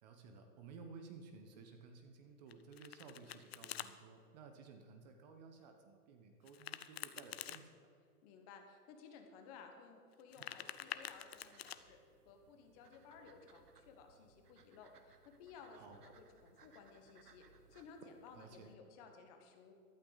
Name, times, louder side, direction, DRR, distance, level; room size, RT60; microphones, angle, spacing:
voice 1, 0.0-7.9 10.4-10.5 15.7-16.0 18.3-18.7, right 4 dB, 25° right, 5 dB, 1.0 m, -56 dB
Domestic sounds home sounds, 2.5-3.9 6.4-7.6 10.1-11.8, left 10 dB, 45° left, 0.6 m, -47 dB
voice 2, 8.2-12.0 12.2-19.7, left 5 dB, 25° left, 5 dB, 1.2 m, -58 dB
sound 1, 10.3-18.7, right 5 dB, 85° right, 1.5 m, -67 dB
14.5 x 12.5 x 4.0 m, 2.3 s
hypercardioid pair, 150°, 46 cm